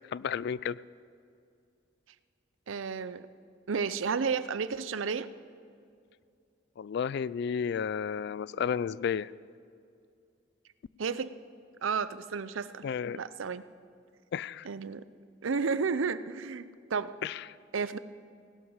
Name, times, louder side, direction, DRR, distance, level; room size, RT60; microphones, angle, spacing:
voice 1, 0.1-0.8 6.8-9.3 12.8-13.2 14.3-14.7 17.2-17.4, left 7 dB, 60° left, 20 dB, 0.3 m, -32 dB
voice 2, 2.7-3.3 3.7-5.3 11.0-11.3 11.8-12.8 13.1-13.6 14.6-15.0 15.4-17.1 17.7-18.0, right 5 dB, 90° right, 14 dB, 0.5 m, -32 dB
17.0 x 12.5 x 4.9 m, 2.4 s
head